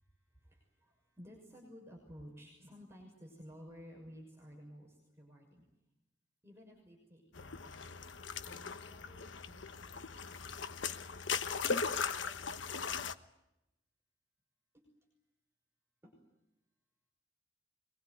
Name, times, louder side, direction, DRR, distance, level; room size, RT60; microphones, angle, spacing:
voice 1, 0.2-5.6 6.4-7.9 8.5-10.6 14.7-14.9 16.0-16.2, equal, 15° right, -1 dB, 6.0 m, -55 dB
sound 1, 7.3-13.1, left 5 dB, 85° left, 1.2 m, -38 dB
24.5 x 21.5 x 9.4 m, 0.91 s
head